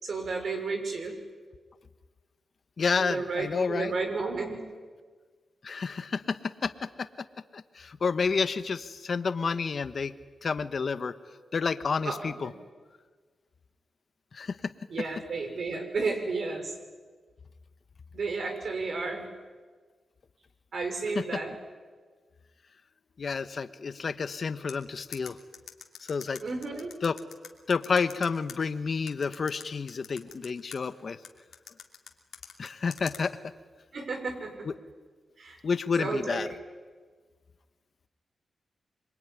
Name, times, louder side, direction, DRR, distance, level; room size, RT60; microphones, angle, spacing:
voice 1, 0.0-1.2 3.0-4.6 12.0-12.5 14.9-16.7 18.1-19.3 20.7-21.6 26.4-27.0 33.9-34.7 35.4-35.6 36.0-36.6, right 3 dB, 65° right, 5 dB, 5.9 m, -32 dB
voice 2, 2.8-3.9 5.6-6.7 7.0-7.1 7.5-10.1 10.4-11.1 11.5-12.5 14.3-14.6 21.1-21.2 23.2-25.4 26.1-26.4 27.0-27.2 27.7-31.2 32.6-33.3 35.6-36.5, left 5 dB, 55° left, 12 dB, 1.3 m, -29 dB
sound 1, 24.7-28.6 29.1-30.8 31.2-33.2, left 8 dB, 85° left, 2.8 m, -44 dB
26.5 x 23.0 x 9.9 m, 1.5 s
cardioid pair, 65°, 0 cm